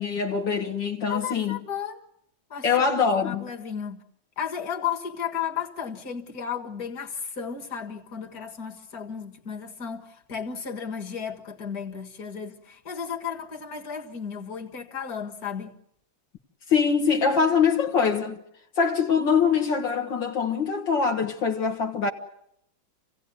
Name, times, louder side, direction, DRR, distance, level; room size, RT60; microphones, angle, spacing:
voice 1, 0.0-1.6 2.6-3.5 16.7-18.4 18.8-22.1, left 6 dB, 75° left, 2.0 m, -23 dB
voice 2, 1.1-2.0 2.5-2.9 3.2-4.0 4.4-15.7, left 7 dB, 50° left, 2.3 m, -34 dB
28.0 x 16.5 x 9.4 m
omnidirectional pair, 2.1 m